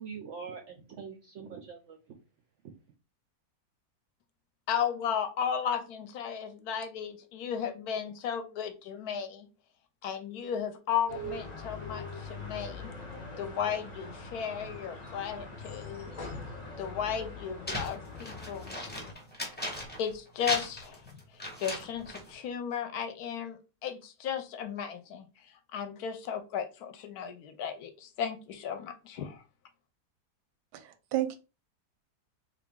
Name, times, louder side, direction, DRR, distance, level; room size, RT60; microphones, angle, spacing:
voice 1, 0.0-2.0 2.6-2.7, right 6 dB, 75° right, 0.6 m, -43 dB
voice 2, 4.7-9.5 10.0-12.9 13.4-16.1 16.8-18.8 20.0-21.1 21.6-29.4, left 8 dB, 70° left, 1.0 m, -35 dB
sound 1, 11.1-19.1, left 2 dB, 45° left, 0.5 m, -42 dB
sound 2, 17.7-20.1 20.4-22.3, left 1 dB, 10° left, 0.6 m, -37 dB
voice 3, 30.7-31.4, right 13 dB, 90° right, 1.2 m, -32 dB
3.6 x 2.4 x 3.6 m
omnidirectional pair, 1.8 m